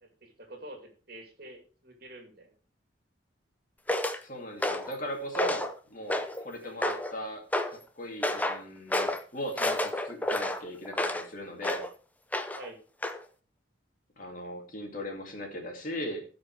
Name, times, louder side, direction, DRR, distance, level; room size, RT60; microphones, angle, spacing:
voice 1, 0.0-2.6 6.6-6.9 12.5-12.8, right 1 dB, 50° right, 3 dB, 2.5 m, -47 dB
sound 1, 3.9-4.2 4.6-4.9 5.3-5.7 6.1-6.4 6.8-7.1 7.5-7.8 8.2-8.6 8.9-9.2 9.6-11.3 11.6-11.9 12.3-12.7 13.0-13.2, left 1 dB, 10° left, 0.6 m, -30 dB
voice 2, 4.2-11.9 14.2-16.2, equal, 45° left, 2 dB, 2.3 m, -38 dB
15.5 x 5.2 x 4.6 m, 0.39 s
head